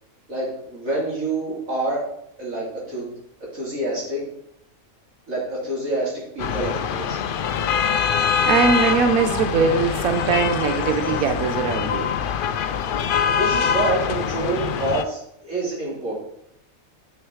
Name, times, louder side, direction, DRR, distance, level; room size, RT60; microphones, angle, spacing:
voice 1, 0.3-2.0 2.4-3.1 3.5-4.2 5.3-7.2 13.4-16.2, right 2 dB, 70° right, -6 dB, 4.0 m, -27 dB
sound 1, 6.4-15.0, left 7 dB, 65° left, 0.5 m, -24 dB
voice 2, 8.4-12.2, right 6 dB, 85° right, 8 dB, 1.1 m, -21 dB
8.2 x 6.4 x 4.7 m, 0.74 s
omnidirectional pair, 1.5 m